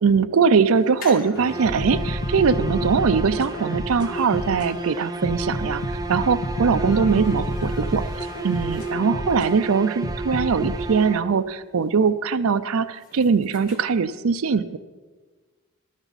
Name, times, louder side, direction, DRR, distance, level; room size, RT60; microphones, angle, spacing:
voice 1, 0.0-5.8 6.1-14.8, right 5 dB, 70° right, 11 dB, 0.5 m, -21 dB
sound 1, 0.7-9.3 9.7-9.8 10.0-10.1 10.4-13.8, left 3 dB, 40° left, 1.9 m, -46 dB
sound 2, 1.3-11.6, right 3 dB, 15° right, 0.5 m, -33 dB
sound 3, 1.6-4.7 5.2-9.5 10.0-10.8, left 1 dB, 75° left, 1.5 m, -29 dB
15.0 x 12.5 x 4.1 m, 1.4 s
head